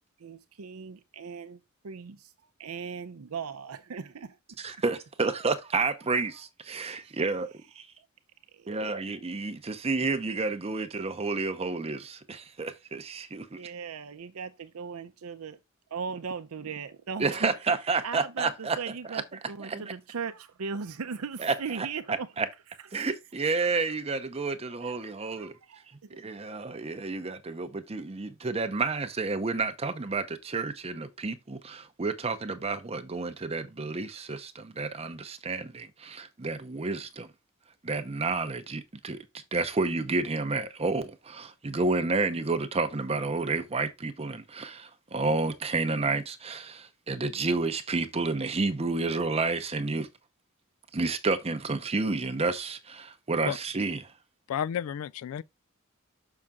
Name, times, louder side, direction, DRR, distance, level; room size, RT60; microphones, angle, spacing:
voice 1, 0.2-1.6 1.8-2.3 2.6-4.6 7.0-7.2 8.5-8.8 13.6-15.6 15.9-17.5 18.0-22.3 22.9-23.1 24.8-25.1 25.4-26.2, right 5 dB, 80° right, 0.6 m, -38 dB
voice 2, 4.6-7.5 7.8-7.9 8.7-13.6 17.2-18.8 19.1-19.2 19.6-19.9 21.4-22.5 22.9-25.5 26.2-37.3 37.8-39.2 39.5-50.1 50.9-54.1, right 3 dB, 30° right, 0.6 m, -30 dB
voice 3, 54.5-55.4, left 9 dB, 70° left, 0.3 m, -31 dB
6.4 x 5.8 x 3.6 m
head